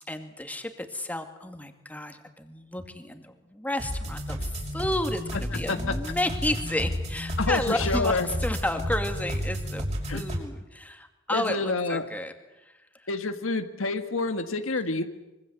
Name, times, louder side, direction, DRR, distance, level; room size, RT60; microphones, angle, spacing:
voice 1, 0.1-9.9 10.1-12.3 12.6-13.1, left 1 dB, 10° left, 6 dB, 2.4 m, -32 dB
sound 1, 3.8-10.4, equal, 35° right, 5.9 m, -31 dB
voice 2, 7.4-8.3 10.1-10.2 11.3-12.0 13.1-15.0, left 3 dB, 90° left, 7 dB, 1.8 m, -28 dB
25.0 x 24.0 x 8.2 m, 1.0 s
head